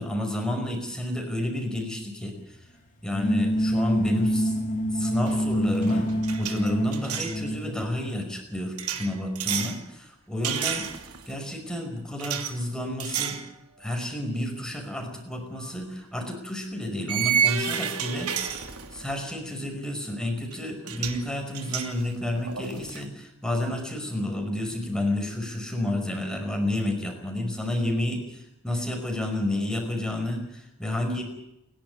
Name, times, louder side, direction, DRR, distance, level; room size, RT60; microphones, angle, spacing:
voice 1, 0.0-2.3 3.0-4.6 4.9-6.1 6.4-10.9 11.3-13.4 13.8-18.3 18.9-31.2, left 1 dB, 5° left, 3 dB, 5.3 m, -30 dB
sound 1, 3.0-7.8, equal, 35° left, 2.9 m, -26 dB
sound 2, 5.3-5.5 5.7-7.4 8.8-9.8 10.4-11.3 12.2-12.5 13.0-13.5 13.9-14.1 15.6-15.7 17.1-19.2 20.5-20.6 20.8-21.2 21.5-23.0, right 8 dB, 90° right, 2.8 m, -30 dB
29.0 x 12.0 x 9.7 m, 0.86 s
head